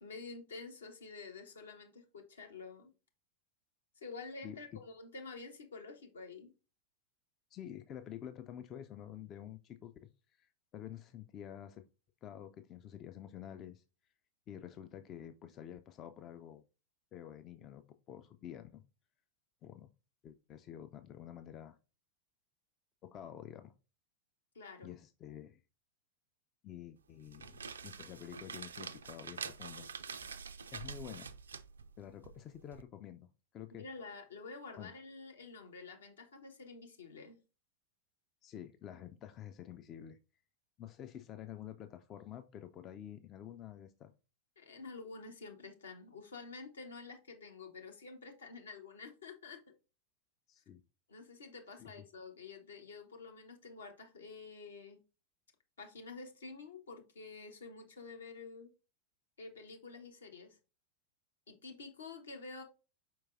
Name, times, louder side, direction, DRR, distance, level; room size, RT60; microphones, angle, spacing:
voice 1, 0.0-2.9 4.0-6.5 24.5-24.9 33.8-37.4 44.6-49.6 51.1-55.0 55.8-58.7 59.4-60.5 61.5-62.6, left 4 dB, 70° left, 0.8 m, -49 dB
voice 2, 4.4-4.8 7.5-11.9 12.2-13.8 14.5-16.6 17.1-18.8 19.6-19.9 20.2-21.8 23.0-23.7 24.8-25.6 26.6-29.9 30.7-31.3 32.0-33.3 33.5-33.8 34.8-34.9 38.4-40.2 40.8-44.1 50.5-50.8 51.8-51.9, left 10 dB, 30° left, 0.3 m, -49 dB
sound 1, 27.1-32.8, right 5 dB, 70° right, 0.3 m, -46 dB
4.8 x 4.5 x 2.4 m
figure-of-eight pair, 90°, 0 cm